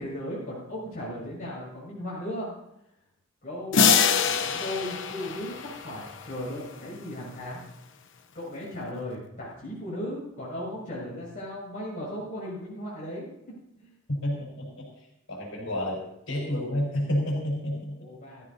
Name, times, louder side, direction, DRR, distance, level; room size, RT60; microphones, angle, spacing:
voice 1, 0.0-2.5 3.4-7.6 8.3-13.3 13.8-13.9 18.0-18.5, left 1 dB, 40° left, -7 dB, 6.5 m, -36 dB
sound 1, 3.7-6.5, left 6 dB, 65° left, 0.9 m, -24 dB
voice 2, 14.2-16.0 16.3-18.0, left 1 dB, 80° left, -2 dB, 5.0 m, -30 dB
20.0 x 14.5 x 2.9 m, 0.82 s
head